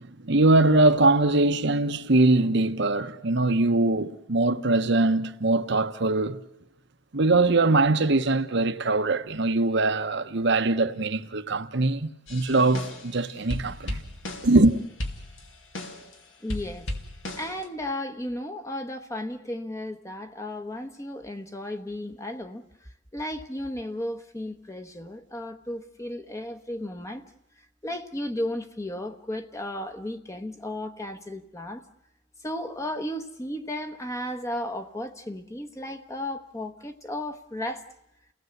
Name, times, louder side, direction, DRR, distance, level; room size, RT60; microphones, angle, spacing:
voice 1, 0.0-6.4 7.1-14.0 14.4-14.8, right 2 dB, 60° right, 1.1 m, -22 dB
sound 1, 12.3-13.2 13.5-14.7 15.0-16.2 16.5-17.6, left 1 dB, 75° left, 2.7 m, -35 dB
voice 2, 16.4-16.9 17.3-22.6 23.1-27.2 27.8-31.8 32.4-37.9, left 1 dB, 15° left, 1.1 m, -34 dB
29.5 x 17.5 x 8.0 m
head